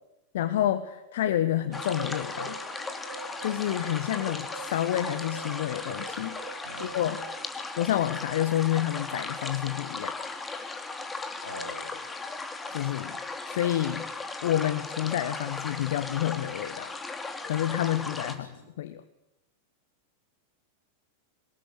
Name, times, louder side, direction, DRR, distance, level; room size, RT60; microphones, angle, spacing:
voice 1, 0.3-2.6 3.4-7.2 7.8-10.1 12.7-13.2 13.5-14.1 14.4-16.9 17.4-18.5 18.8-19.0, left 12 dB, 55° left, 13 dB, 1.4 m, -29 dB
sound 1, 1.7-18.3, left 3 dB, 15° left, 2.9 m, -37 dB
sound 2, 1.7-7.5, right 6 dB, 65° right, 1.0 m, -45 dB
voice 2, 6.6-7.0 11.4-12.0 18.1-18.6, left 1 dB, 80° left, 4 dB, 8.0 m, -44 dB
24.0 x 21.0 x 9.7 m, 0.91 s
figure-of-eight pair, 90°, 0 cm